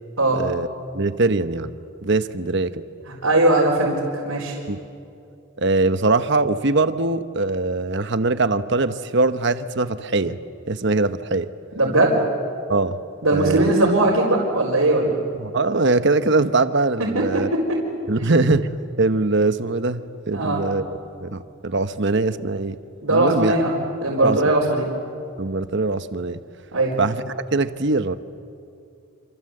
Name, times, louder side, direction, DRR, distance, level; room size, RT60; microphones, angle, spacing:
voice 1, 0.3-0.7 0.9-1.7 2.0-2.8 4.7-4.8 5.6-10.4 10.7-11.5 12.7-13.0 13.3-13.7 15.4-17.5 18.1-18.7 19.0-20.8 21.2-22.8 23.1-23.6 24.2-24.4 25.4-26.4 27.0-28.1, right 3 dB, 55° right, 11 dB, 1.0 m, -22 dB
voice 2, 3.2-4.0 4.2-4.5 11.8-12.2 13.2-15.2 17.1-17.6 20.3-20.6 23.0-24.9 26.7-26.9, right 2 dB, 80° right, -5 dB, 4.6 m, -19 dB
28.0 x 26.5 x 7.9 m, 2.6 s
head